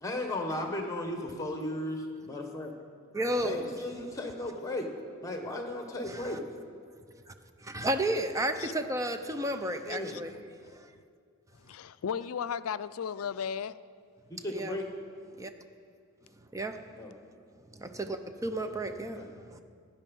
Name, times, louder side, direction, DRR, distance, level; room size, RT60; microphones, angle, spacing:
voice 1, 0.0-2.7 3.4-4.9 5.2-6.4 9.9-10.2 14.3-14.8 17.0-17.1 19.0-19.3, left 1 dB, 15° left, 1.4 m, -35 dB
voice 2, 3.1-3.7 6.1-6.4 7.3-7.4 7.6-10.3 10.7-10.9 14.5-14.8 15.4-15.5 16.5-16.9 17.7-19.6, right 1 dB, 15° right, 0.6 m, -33 dB
voice 3, 9.9-10.2 11.6-13.7, left 7 dB, 75° left, 0.4 m, -35 dB
16.5 x 10.0 x 5.4 m
head